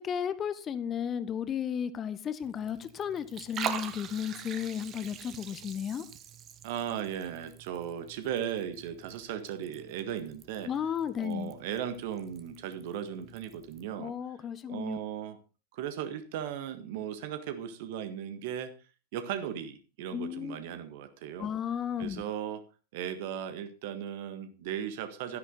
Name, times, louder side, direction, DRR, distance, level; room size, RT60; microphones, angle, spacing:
voice 1, 0.0-6.0 10.7-11.5 14.0-15.0 20.1-20.6 21.4-22.2, left 8 dB, 25° left, 15 dB, 1.0 m, -34 dB
Liquid, 2.4-13.9, right 9 dB, 30° right, 1.2 m, -44 dB
voice 2, 6.6-14.1 14.7-15.4 15.7-18.7 19.1-21.5 22.0-22.6 22.9-25.4, right 9 dB, 50° right, 9 dB, 1.6 m, -37 dB
12.5 x 10.5 x 3.9 m, 0.34 s
figure-of-eight pair, 90°, 0 cm